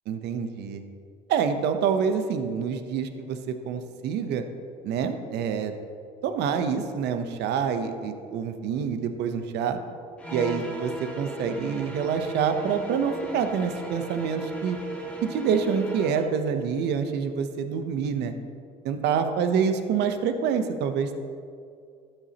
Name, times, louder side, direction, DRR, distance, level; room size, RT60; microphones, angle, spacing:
voice 1, 0.1-0.8 1.3-4.4 4.8-5.7 6.2-9.8 10.3-14.8 15.2-18.3 18.8-21.1, right 6 dB, 65° right, 8 dB, 0.8 m, -27 dB
sound 1, 10.2-16.3, right 2 dB, 5° left, 1.6 m, -36 dB
12.0 x 8.9 x 2.9 m, 2.3 s
supercardioid pair, 80°, 19 cm